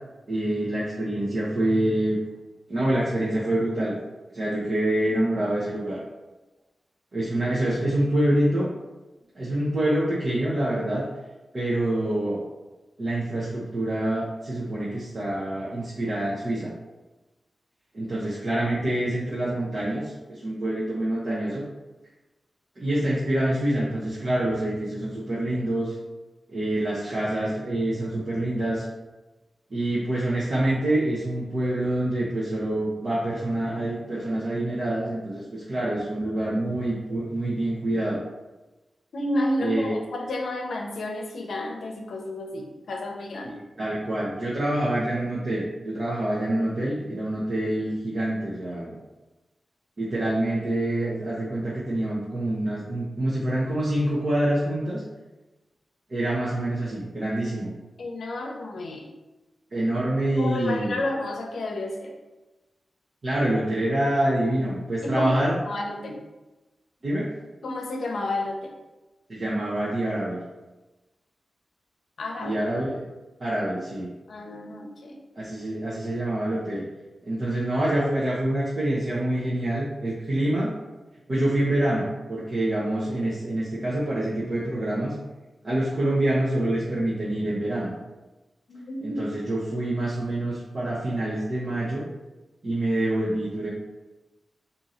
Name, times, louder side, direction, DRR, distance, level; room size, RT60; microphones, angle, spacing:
voice 1, 0.3-2.2 2.7-3.9 4.3-6.0 7.1-8.7 9.3-11.1 11.5-12.4 13.0-16.7 17.9-21.6 22.8-26.0 26.5-28.8 29.7-38.2 39.6-40.0 43.4-48.9 50.0-55.0 56.1-57.7 59.7-61.0 63.2-65.5 67.0-67.3 69.3-70.4 72.4-73.0 73.4-74.1 75.4-76.8 77.2-80.7 81.3-85.1 85.6-87.9 89.0-92.1 92.6-93.7, right 1 dB, 50° right, -7 dB, 0.8 m, -26 dB
voice 2, 39.1-43.5 58.0-59.1 60.4-62.1 65.0-66.2 67.6-68.7 72.2-72.6 74.3-75.2 88.7-89.2, left 1 dB, 85° left, 2 dB, 0.6 m, -31 dB
3.8 x 2.7 x 4.2 m, 1.1 s
wide cardioid pair, 130°, 0 cm